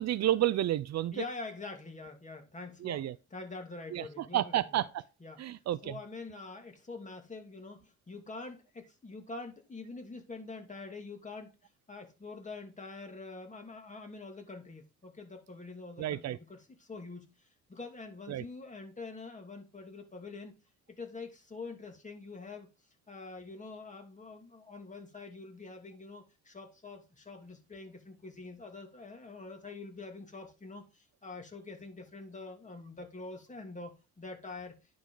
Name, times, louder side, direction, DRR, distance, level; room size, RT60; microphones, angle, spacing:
voice 1, 0.0-1.1 2.8-3.2 3.9-5.0 5.4-6.0 16.0-16.4 18.3-18.4, right 13 dB, 60° right, 0.5 m, -31 dB
voice 2, 1.1-3.0 3.3-4.9 5.2-11.5 11.9-20.5 20.9-22.7 23.1-34.7, left 3 dB, 25° left, 2.5 m, -45 dB
10.0 x 4.9 x 3.9 m
cardioid pair, 90°, 30 cm